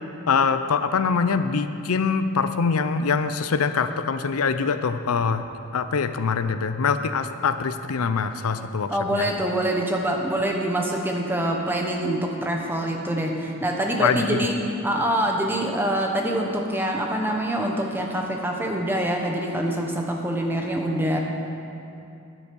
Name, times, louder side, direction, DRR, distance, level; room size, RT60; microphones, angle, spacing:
voice 1, 0.3-5.4 5.7-9.3 14.0-14.4, left 5 dB, 80° left, 10 dB, 0.5 m, -24 dB
voice 2, 8.9-14.5 14.8-21.2, right 1 dB, 10° right, 0 dB, 1.1 m, -25 dB
12.0 x 9.7 x 5.4 m, 2.7 s
head